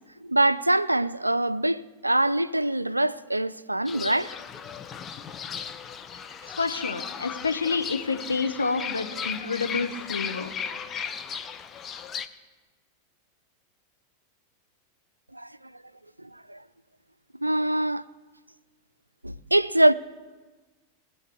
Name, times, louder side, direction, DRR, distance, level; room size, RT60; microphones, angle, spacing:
voice 1, 0.2-4.3 15.3-15.5 16.2-16.6 17.4-18.0 19.2-19.9, right 1 dB, 85° right, 0.4 m, -24 dB
Fowl / Bird, 3.9-12.3, left 7 dB, 25° left, 0.7 m, -36 dB
voice 2, 6.6-10.5, left 4 dB, 75° left, 1.0 m, -28 dB
18.5 x 7.1 x 8.0 m
figure-of-eight pair, 90°, 0 cm